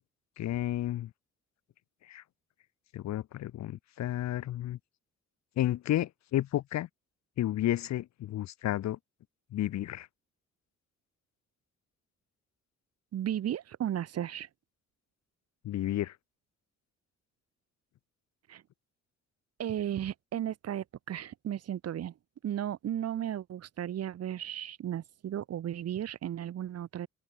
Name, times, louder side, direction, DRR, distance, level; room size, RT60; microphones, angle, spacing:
voice 1, 0.4-1.1 2.1-2.2 2.9-4.8 5.6-6.9 7.4-9.0 9.5-10.1 15.6-16.1, left 13 dB, 65° left, 0.8 m, -31 dB
voice 2, 13.1-14.5 18.5-18.6 19.6-22.1 22.4-27.1, right 10 dB, 55° right, 1.0 m, -35 dB
open air
cardioid pair, 90°, 30 cm